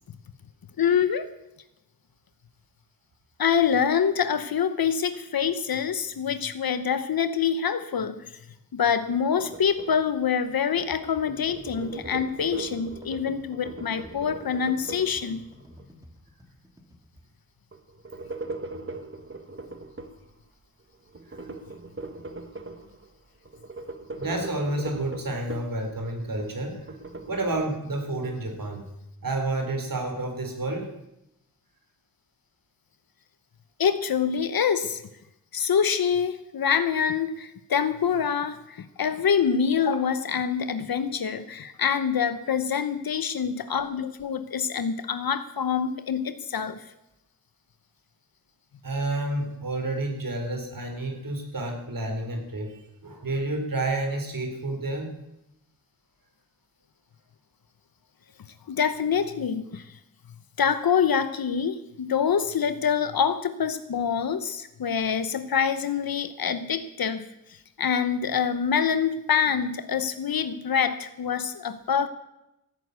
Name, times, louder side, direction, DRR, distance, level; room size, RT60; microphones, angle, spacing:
voice 1, 0.8-1.3 3.4-8.4 8.7-15.4 33.8-35.0 35.5-46.8 58.7-59.9 60.6-72.1, left 7 dB, 85° left, 11 dB, 0.9 m, -26 dB
sound 1, 9.1-10.8 11.1-15.9 17.7-20.2 21.1-23.1 23.5-25.8 26.2-27.6, right 2 dB, 35° right, 1.4 m, -40 dB
sound 2, 10.7-17.2, left 1 dB, 10° right, 2.7 m, -50 dB
voice 2, 24.2-26.9 27.3-28.9 29.2-30.9 48.8-55.1, right 2 dB, 70° right, 4 dB, 3.8 m, -30 dB
15.5 x 9.3 x 8.1 m, 0.87 s
wide cardioid pair, 70°, 35 cm